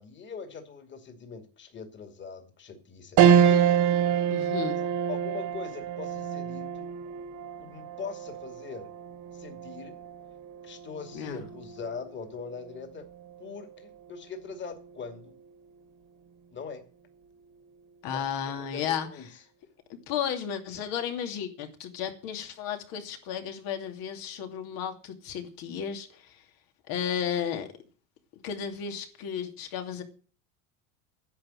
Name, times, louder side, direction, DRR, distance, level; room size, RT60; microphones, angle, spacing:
voice 1, 0.0-3.4 4.6-6.9 7.6-8.9 9.3-10.0 10.6-13.1 13.4-15.3 16.5-16.8 18.1-19.3, left 5 dB, 30° left, 6 dB, 2.6 m, -42 dB
sound 1, 3.2-12.8 13.2-13.3 14.7-15.1, right 8 dB, 50° right, 1.7 m, -27 dB
voice 2, 3.3-3.7 4.3-4.8 11.1-11.4 18.0-19.1 20.1-26.4 26.9-27.7 28.4-30.0, left 8 dB, 65° left, 5 dB, 2.8 m, -33 dB
10.5 x 7.7 x 9.1 m, 0.40 s
supercardioid pair, 125°, 38 cm